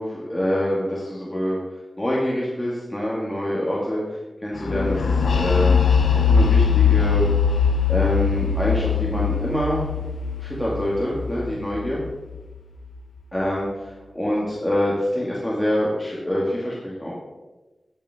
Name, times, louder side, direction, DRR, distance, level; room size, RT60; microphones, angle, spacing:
voice 1, 0.0-1.6 2.0-5.8 6.1-7.3 7.9-9.8 10.4-12.0 13.3-17.1, equal, 15° left, -6 dB, 2.2 m, -25 dB
sound 1, 4.7-12.4, left 6 dB, 85° left, 0.7 m, -21 dB
13.5 x 5.6 x 3.7 m, 1.1 s
cardioid pair, 40°, 0 cm